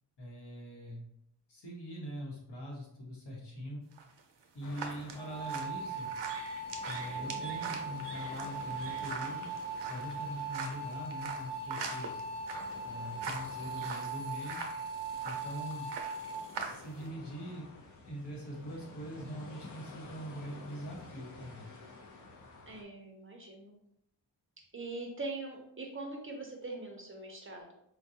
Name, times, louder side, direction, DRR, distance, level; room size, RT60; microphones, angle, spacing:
voice 1, 0.2-1.0 1.5-3.8 4.5-6.1 6.8-9.5 9.9-12.2 12.8-14.7 15.2-15.9 16.6-17.7 18.0-21.7, equal, 75° left, -3 dB, 1.3 m, -43 dB
sound 1, 3.9-17.1, right 5 dB, 90° right, 0.6 m, -44 dB
sound 2, 4.6-22.8, left 3 dB, 45° left, 0.6 m, -52 dB
sound 3, 5.2-16.4, right 3 dB, 90° left, 1.0 m, -40 dB
voice 2, 22.7-23.8 24.7-27.7, right 2 dB, 30° right, 1 dB, 0.5 m, -42 dB
4.4 x 2.2 x 2.7 m, 0.76 s
wide cardioid pair, 145°, 42 cm